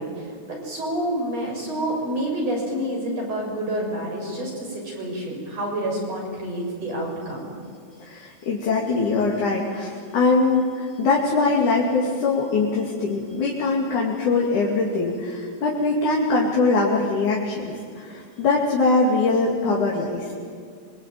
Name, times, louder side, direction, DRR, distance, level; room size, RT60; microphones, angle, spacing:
voice 1, 0.0-7.5, right 1 dB, 55° right, -1 dB, 8.0 m, -28 dB
voice 2, 8.0-20.3, left 3 dB, 80° left, -3 dB, 4.1 m, -22 dB
26.5 x 23.5 x 9.2 m, 2.2 s
omnidirectional pair, 3.5 m